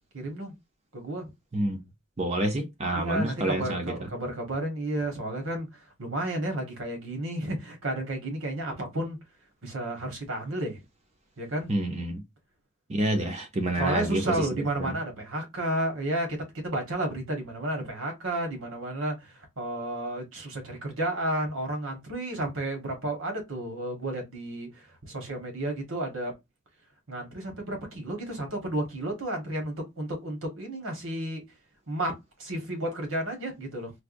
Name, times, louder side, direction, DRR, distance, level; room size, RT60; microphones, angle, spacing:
voice 1, 0.1-0.5 0.9-1.3 2.9-9.2 9.6-10.8 11.4-11.7 13.7-26.3 27.1-31.5 31.9-32.1 32.4-33.9, right 1 dB, 75° right, 1.3 m, -32 dB
voice 2, 2.2-3.9 11.7-12.2 12.9-14.4, right 1 dB, 30° right, 0.6 m, -28 dB
4.6 x 2.2 x 2.5 m
head